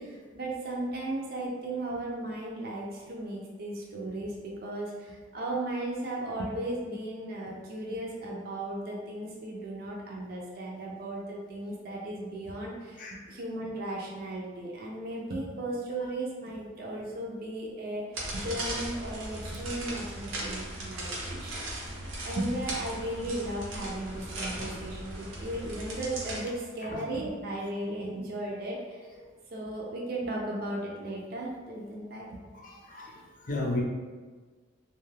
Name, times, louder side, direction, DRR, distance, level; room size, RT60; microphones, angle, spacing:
voice 1, 0.0-22.0 22.2-29.1 29.5-32.4, right 1 dB, 50° right, -3 dB, 0.4 m, -36 dB
sound 1, 18.1-26.4, right 1 dB, 85° right, 0.7 m, -38 dB
voice 2, 32.6-33.1 33.4-33.8, left 2 dB, 40° left, -2 dB, 0.4 m, -32 dB
2.5 x 2.3 x 3.2 m, 1.4 s
head